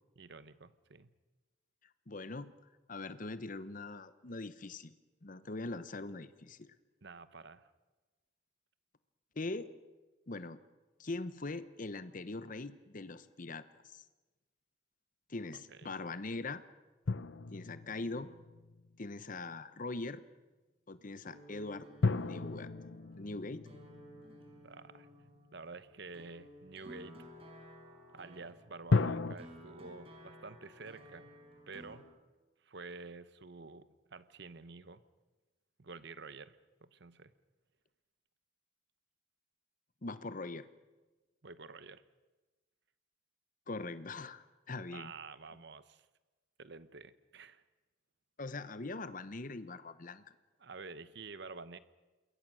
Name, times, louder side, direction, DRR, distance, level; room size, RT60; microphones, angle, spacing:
voice 1, 0.2-1.1 7.0-7.7 15.5-15.9 24.6-25.1 25.5-27.2 28.1-31.3 31.7-32.1 32.6-35.0 35.8-37.3 41.4-42.0 44.9-46.1 46.6-47.6 50.6-51.8, right 4 dB, 60° right, 14 dB, 1.0 m, -49 dB
voice 2, 2.1-2.5 2.9-4.9 5.2-6.7 9.4-9.7 10.3-10.6 11.0-14.0 15.3-16.6 17.5-18.3 19.0-20.2 20.9-22.7 23.2-23.7 40.0-40.7 43.7-45.1 48.4-50.2, left 3 dB, 45° left, 13 dB, 0.9 m, -42 dB
sound 1, 17.1-19.0 22.0-25.3 28.9-29.4, left 3 dB, 70° left, 0.7 m, -34 dB
sound 2, 21.2-32.0, equal, 30° right, 4.9 m, -55 dB
27.5 x 21.5 x 6.3 m, 1.2 s
head